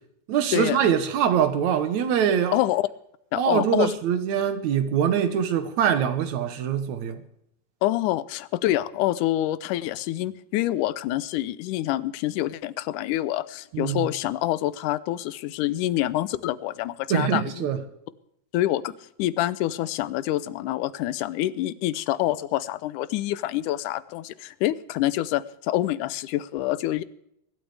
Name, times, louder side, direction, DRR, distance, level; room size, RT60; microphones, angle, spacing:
voice 1, 0.3-2.6 3.4-7.2 13.7-14.1 17.1-17.8, right 8 dB, 70° right, 2.4 m, -23 dB
voice 2, 2.5-2.9 3.3-3.9 7.8-17.7 18.5-18.9 19.2-27.0, left 14 dB, 85° left, 2.2 m, -26 dB
23.5 x 12.0 x 3.4 m
omnidirectional pair, 3.5 m